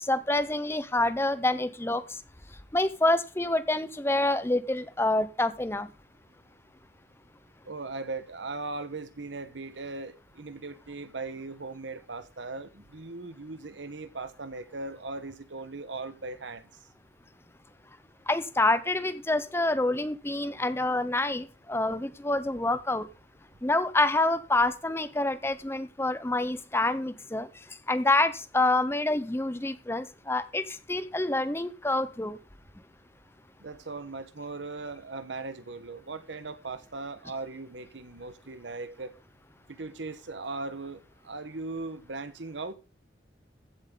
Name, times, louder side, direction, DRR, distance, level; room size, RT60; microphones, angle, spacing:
voice 1, 0.0-2.0 2.7-5.9 18.3-23.1 23.6-27.5 27.9-32.4, left 2 dB, 15° left, 0.7 m, -27 dB
voice 2, 7.7-16.7 33.6-39.1 39.7-42.7, right 3 dB, 75° right, 1.1 m, -38 dB
15.0 x 7.5 x 3.8 m
head